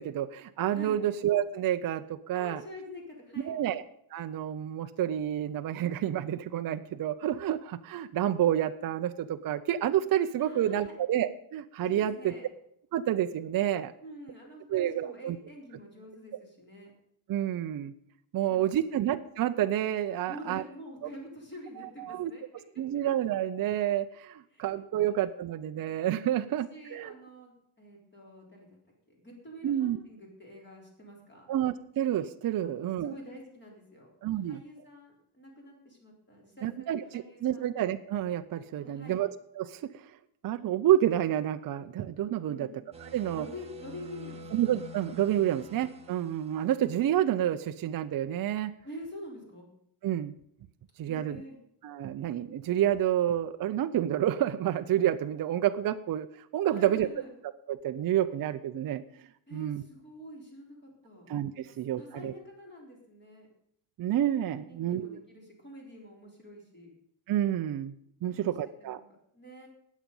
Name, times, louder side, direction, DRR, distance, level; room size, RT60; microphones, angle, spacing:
voice 1, 0.0-2.6 3.4-3.8 4.1-12.1 12.9-13.9 14.7-15.4 17.3-17.9 18.3-20.6 21.8-22.3 22.8-27.1 29.6-30.0 31.5-33.1 34.2-34.6 36.6-39.8 40.4-42.7 43.0-43.5 44.5-48.7 50.0-50.3 51.0-51.4 51.8-56.3 56.5-57.1 57.7-59.0 59.5-59.8 61.3-62.3 64.0-65.2 67.3-67.9 68.2-69.0, right 11 dB, 45° right, 8 dB, 0.5 m, -29 dB
voice 2, 2.3-3.6 10.4-10.9 11.8-12.5 14.0-16.9 18.5-19.1 20.3-22.4 24.5-24.7 26.5-28.7 29.1-31.5 32.6-34.1 34.4-37.7 38.8-39.2 42.5-42.8 43.3-44.4 48.8-49.7 51.1-51.6 56.7-57.3 59.5-60.8 61.0-61.3 61.6-63.5 64.6-66.9 68.3-68.5 68.8-69.0 69.3-69.7, equal, 20° left, -1 dB, 4.0 m, -47 dB
sound 1, 42.9-47.4, left 2 dB, 15° right, 1.3 m, -48 dB
19.0 x 7.3 x 5.4 m, 0.72 s
cardioid pair, 175°, 48 cm